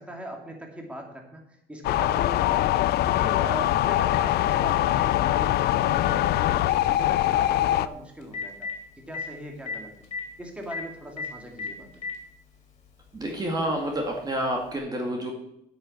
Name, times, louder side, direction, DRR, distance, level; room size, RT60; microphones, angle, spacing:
voice 1, 0.0-2.8 3.1-8.5 9.1-9.9 10.4-11.9, right 1 dB, 5° right, 1 dB, 2.4 m, -39 dB
sound 1, 1.8-7.9, left 13 dB, 70° left, 0.5 m, -23 dB
Telephone, 5.5-5.6 7.8-7.9 8.2-8.7 9.1-9.2 9.7-9.8 10.0-10.2 10.7-10.8 11.2-11.3 11.6-12.2 13.1-13.2 14.7-14.8, left 5 dB, 40° left, 3.9 m, -32 dB
voice 2, 13.1-15.3, right 1 dB, 25° right, 0 dB, 2.2 m, -28 dB
8.6 x 7.0 x 8.5 m, 0.77 s
cardioid pair, 110°, 17 cm